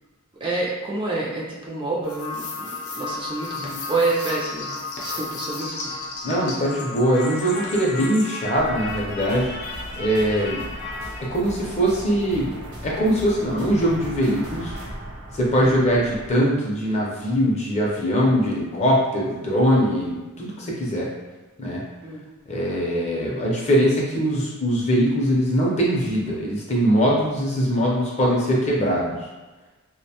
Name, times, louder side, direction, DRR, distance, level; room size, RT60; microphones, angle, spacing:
voice 1, 0.4-5.9 15.6-15.8 22.0-22.2, right 3 dB, 25° right, -4 dB, 0.4 m, -28 dB
sound 1, 2.0-11.2, left 3 dB, 90° left, 0.6 m, -33 dB
voice 2, 6.2-9.5 10.0-10.6 11.2-12.5 12.8-14.7 15.3-21.1 21.6-21.8 22.5-29.1, equal, 30° left, -4 dB, 0.5 m, -22 dB
sound 2, 8.5-16.4, equal, 75° right, 0.6 m, -37 dB
2.5 x 2.1 x 2.8 m, 1.2 s
head